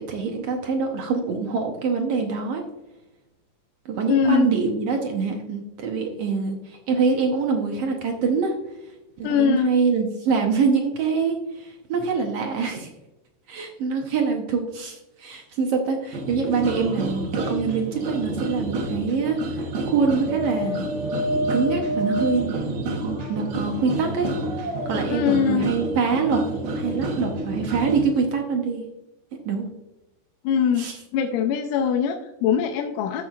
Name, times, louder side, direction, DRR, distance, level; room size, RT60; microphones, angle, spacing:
voice 1, 0.0-2.6 3.8-8.6 9.2-12.9 13.5-20.8 21.5-22.9 23.3-24.3 24.8-26.4 26.7-28.8 29.4-29.7 30.8-31.0, right 5 dB, 75° right, 2 dB, 1.4 m, -25 dB
voice 2, 4.1-4.5 9.2-9.7 25.1-25.7 30.4-33.2, left 7 dB, 80° left, 5 dB, 2.1 m, -22 dB
sound 1, 16.1-28.0, right 1 dB, 60° right, 1.6 m, -28 dB
14.0 x 6.3 x 2.4 m, 0.97 s
omnidirectional pair, 3.8 m